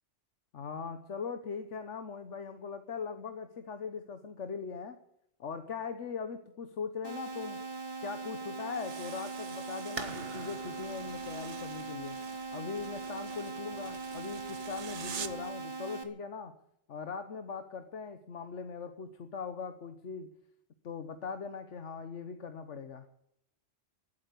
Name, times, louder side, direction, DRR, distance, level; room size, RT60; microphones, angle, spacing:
voice 1, 0.5-5.0 5.4-7.6 8.0-12.2 12.5-16.6 16.9-20.3 20.8-23.0, left 5 dB, 80° left, 8 dB, 1.4 m, -40 dB
sound 1, 7.0-16.0, right 4 dB, 20° right, 1.6 m, -41 dB
sound 2, 8.7-15.5, right 8 dB, 75° right, 1.3 m, -48 dB
sound 3, 10.0-15.4, right 4 dB, 55° right, 1.5 m, -48 dB
15.0 x 9.3 x 9.3 m, 0.74 s
omnidirectional pair, 1.2 m